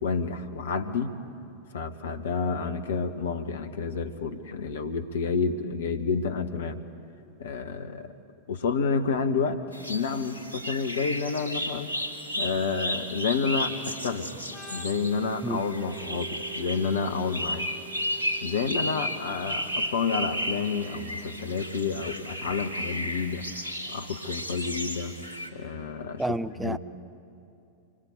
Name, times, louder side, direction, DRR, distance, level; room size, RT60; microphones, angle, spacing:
voice 1, 0.0-1.2 1.7-6.8 7.4-8.1 8.5-9.6 9.9-11.9 12.3-14.3 14.7-17.7 18.4-23.4 23.9-25.1 25.5-26.2 26.6-26.8, left 5 dB, 65° left, 8 dB, 1.5 m, -29 dB
sound 1, 9.7-25.5, equal, 80° right, 2.2 m, -34 dB
Organ, 14.5-22.0, right 10 dB, 15° left, 1.8 m, -47 dB
voice 2, 26.2-26.8, right 1 dB, 5° right, 13 dB, 0.7 m, -29 dB
26.0 x 22.5 x 8.3 m, 2.6 s
figure-of-eight pair, 90°, 0 cm